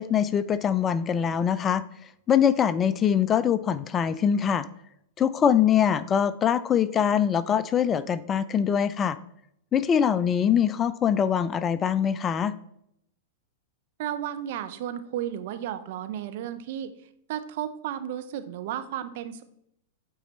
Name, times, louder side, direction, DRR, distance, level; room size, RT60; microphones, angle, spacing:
voice 1, 0.0-1.8 2.3-4.7 5.2-9.2 9.7-12.5, left 8 dB, 25° left, 15 dB, 0.3 m, -23 dB
voice 2, 14.0-16.9 17.3-19.4, right 10 dB, 55° right, 10 dB, 0.5 m, -33 dB
8.8 x 4.1 x 3.1 m, 0.74 s
figure-of-eight pair, 100°, 0 cm